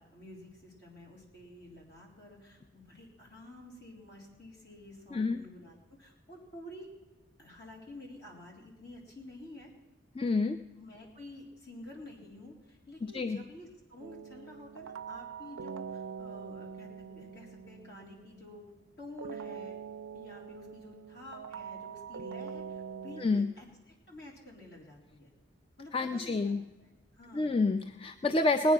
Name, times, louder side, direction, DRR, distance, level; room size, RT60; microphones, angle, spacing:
voice 1, 0.0-6.9 7.4-9.7 10.8-18.7 19.0-19.8 20.1-25.3 25.8-27.6, left 1 dB, 50° left, -2 dB, 3.7 m, -50 dB
voice 2, 10.2-10.6 13.0-13.4 23.2-23.5 25.9-26.6 27.3-28.7, left 2 dB, 25° left, 9 dB, 0.4 m, -28 dB
sound 1, 14.0-18.6 19.2-23.3, right 6 dB, 75° right, 0.4 m, -44 dB
19.0 x 9.5 x 6.0 m, 1.1 s
head